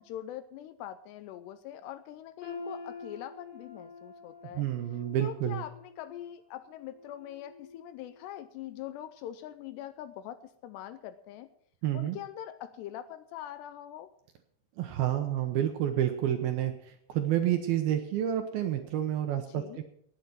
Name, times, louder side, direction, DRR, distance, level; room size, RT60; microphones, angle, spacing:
voice 1, 0.0-4.7 5.2-11.5 11.9-14.1 19.5-19.8, left 11 dB, 80° left, 12 dB, 2.6 m, -43 dB
sound 1, 2.4-8.4 8.8-9.0 9.7-9.8, left 3 dB, 35° left, 3.0 m, -47 dB
voice 2, 4.5-5.6 11.8-12.2 14.8-19.6, right 11 dB, 75° right, 6 dB, 2.4 m, -29 dB
18.5 x 8.1 x 6.0 m, 0.67 s
omnidirectional pair, 5.2 m